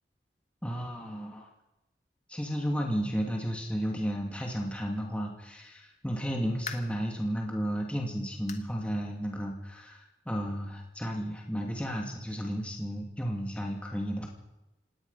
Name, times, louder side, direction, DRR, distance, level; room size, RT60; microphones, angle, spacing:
voice 1, 0.6-1.5 2.3-14.3, equal, 5° left, 0 dB, 2.6 m, -33 dB
sound 1, 6.6-7.1 7.6-7.7 8.5-8.8 9.1-9.2 9.7-9.8 10.9-11.0, left 6 dB, 40° left, 1.7 m, -43 dB
25.5 x 18.5 x 5.7 m, 0.97 s
head